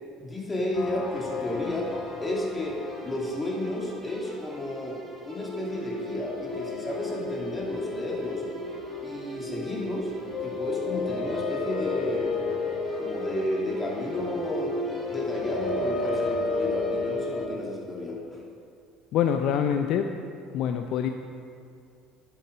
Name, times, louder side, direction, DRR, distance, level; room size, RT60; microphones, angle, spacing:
voice 1, 0.2-1.9 2.2-5.0 5.3-8.4 9.0-10.1 10.4-12.5 13.0-14.8 15.1-18.4, left 1 dB, 20° left, -3 dB, 2.9 m, -32 dB
sound 1, 0.7-4.2 5.4-17.5, left 3 dB, 40° left, 1.3 m, -32 dB
sound 2, 1.0-15.7, right 1 dB, 25° right, 2.7 m, -46 dB
voice 2, 19.1-20.1 20.5-21.1, left 8 dB, 60° left, 7 dB, 0.5 m, -25 dB
10.5 x 7.7 x 5.3 m, 2.3 s
hypercardioid pair, 60°, 0 cm